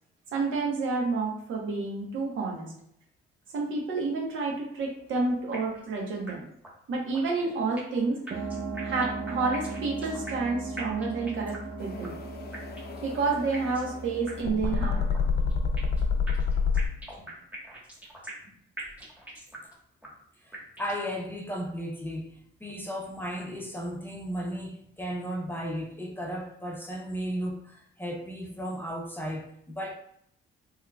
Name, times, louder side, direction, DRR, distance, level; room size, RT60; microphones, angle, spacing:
voice 1, 0.3-2.7 3.5-6.4 6.9-8.5 8.8-12.1 13.0-15.0, right 3 dB, 75° right, 1.1 m, -29 dB
sound 1, 5.5-5.9 6.3-6.4 6.6-6.7 7.1-8.0 8.3-10.5 10.8-11.7 12.0-12.1 12.5-13.0 13.5-13.9 14.3-14.4 14.6-14.7 15.1-16.0 16.3-18.5 18.8-19.7 20.0-20.1 20.5-21.0, right 1 dB, 5° right, 1.3 m, -43 dB
sound 2, 8.3-16.4, right 3 dB, 40° right, 0.8 m, -38 dB
sound 3, 11.8-16.9, left 4 dB, 55° left, 0.5 m, -28 dB
voice 2, 20.4-29.9, equal, 10° left, 0.6 m, -35 dB
3.6 x 3.1 x 2.3 m
cardioid pair, 90°, 20 cm